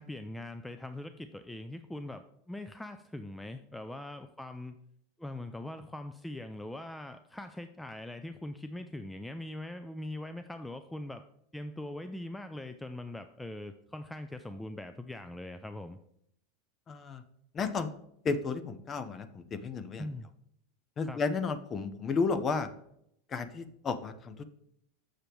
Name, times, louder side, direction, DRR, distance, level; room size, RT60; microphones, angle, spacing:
voice 1, 0.0-4.8 5.2-11.2 11.5-16.0 20.0-20.3 21.0-21.2, left 1 dB, 5° left, 9 dB, 0.4 m, -42 dB
voice 2, 16.9-17.2 17.5-17.9 18.2-20.1 21.0-22.7 23.3-24.4, left 4 dB, 30° left, 11 dB, 0.8 m, -32 dB
6.9 x 6.5 x 4.5 m, 0.73 s
supercardioid pair, 120°, 0 cm